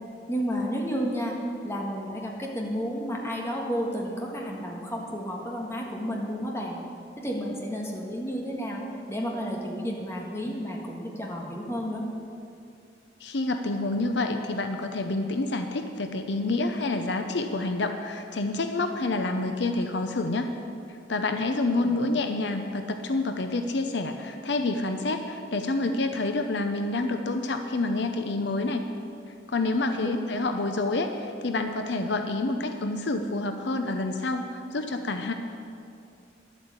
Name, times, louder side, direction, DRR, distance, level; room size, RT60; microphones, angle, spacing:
voice 1, 0.3-1.4 1.6-6.8 7.2-8.8 9.1-12.0 21.7-22.1 29.9-30.2, equal, 15° left, -1 dB, 1.6 m, -31 dB
voice 2, 13.2-20.5 21.1-28.8 29.5-35.3, left 2 dB, 70° left, 6 dB, 0.7 m, -28 dB
11.0 x 8.3 x 8.1 m, 2.6 s
head